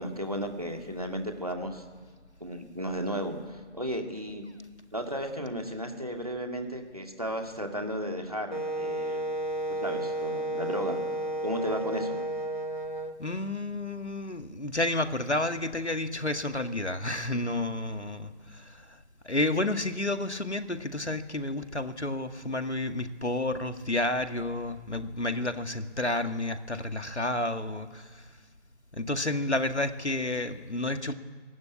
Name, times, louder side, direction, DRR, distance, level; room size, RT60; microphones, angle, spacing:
voice 1, 0.0-1.8 2.4-4.4 4.9-9.3 9.8-11.0 11.4-12.2, equal, 30° right, 4 dB, 2.3 m, -34 dB
Wind instrument woodwind instrument, 8.5-13.1, right 1 dB, 40° left, 2.1 m, -32 dB
voice 2, 13.2-19.0 19.2-28.3 28.9-31.1, left 2 dB, 70° left, 8 dB, 2.1 m, -30 dB
24.0 x 18.5 x 8.6 m, 1.5 s
figure-of-eight pair, 180°, 35 cm